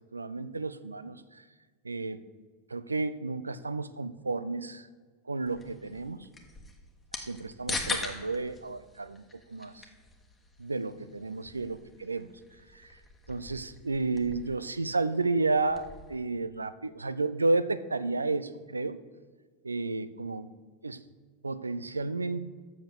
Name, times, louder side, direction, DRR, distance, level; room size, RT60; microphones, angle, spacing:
voice 1, 0.1-1.4 1.8-2.2 2.7-4.9 5.3-6.2 7.2-9.2 9.5-9.9 10.6-12.3 12.7-13.0 13.3-19.0 19.6-20.5 20.8-21.0 21.4-22.4, right 3 dB, 80° right, 15 dB, 0.4 m, -32 dB
sound 1, 5.5-16.1, left 3 dB, 15° left, 1.4 m, -42 dB
7.8 x 6.7 x 6.7 m, 1.4 s
figure-of-eight pair, 85°, 0 cm